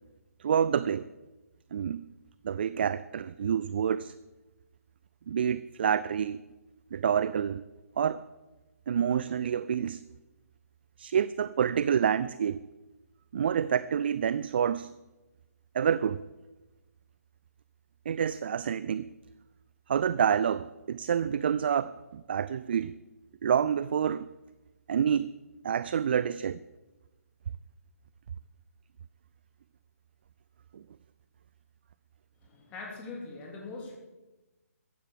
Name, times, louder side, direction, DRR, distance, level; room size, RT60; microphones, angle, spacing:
voice 1, 0.4-1.1 1.7-2.1 2.4-4.1 5.3-6.4 6.9-7.6 8.0-8.2 8.9-10.0 11.0-12.6 13.3-14.9 15.7-16.2 18.1-19.1 19.9-22.9 23.4-24.3 24.9-25.3 25.6-26.6 30.7-30.8, right 8 dB, 40° right, 0.4 m, -28 dB
voice 2, 32.4-33.9, left 3 dB, 15° left, 3.4 m, -42 dB
14.5 x 9.6 x 8.6 m
figure-of-eight pair, 140°, 8 cm